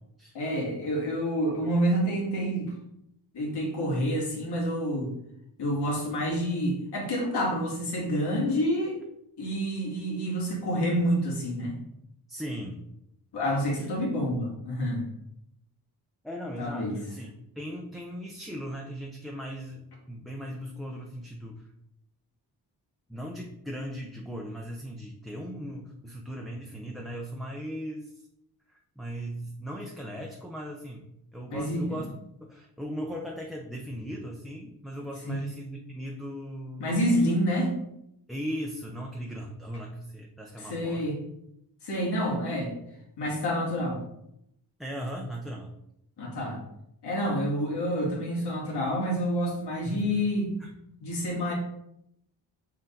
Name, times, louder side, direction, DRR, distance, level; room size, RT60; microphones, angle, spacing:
voice 1, 0.3-2.7 3.3-5.1 5.6-9.0 9.4-11.8 13.3-15.0 16.6-17.0 31.5-32.0 35.3-35.5 36.8-37.7 40.6-41.2 41.8-42.7 43.2-44.0 46.2-46.6 47.0-50.5 51.0-51.5, equal, 80° left, -3 dB, 2.5 m, -28 dB
voice 2, 12.3-12.9 16.2-21.6 23.1-28.3 28.7-32.1 32.4-37.0 38.3-41.1 44.8-45.7 49.8-50.1 50.6-50.8, equal, ahead, -1 dB, 0.7 m, -38 dB
6.6 x 3.8 x 3.9 m, 0.79 s
wide cardioid pair, 125°, 40 cm